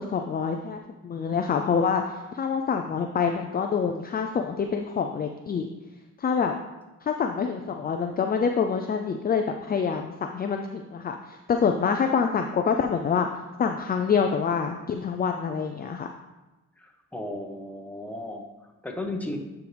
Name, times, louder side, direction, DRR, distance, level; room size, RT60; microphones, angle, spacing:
voice 1, 0.0-5.7 6.2-6.5 7.0-13.3 13.6-16.1, left 6 dB, 30° left, 4 dB, 0.5 m, -26 dB
voice 2, 16.8-19.4, left 1 dB, 5° left, 2 dB, 1.0 m, -35 dB
9.1 x 4.6 x 3.4 m, 1.1 s
cardioid pair, 90°, 30 cm